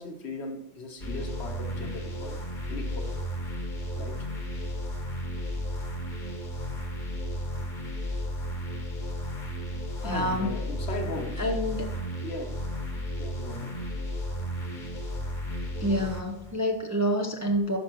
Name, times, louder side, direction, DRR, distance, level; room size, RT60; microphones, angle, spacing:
voice 1, 0.0-2.4 2.7-3.1 4.0-4.3 10.0-11.5 12.2-12.7 13.2-13.8, left 2 dB, 65° left, 1.3 m, -38 dB
sound 1, 1.0-16.5, equal, 45° left, 1.3 m, -34 dB
voice 2, 10.0-10.6 11.4-12.0 15.8-17.8, equal, 20° right, 0.6 m, -28 dB
12.0 x 5.9 x 3.0 m
omnidirectional pair, 1.2 m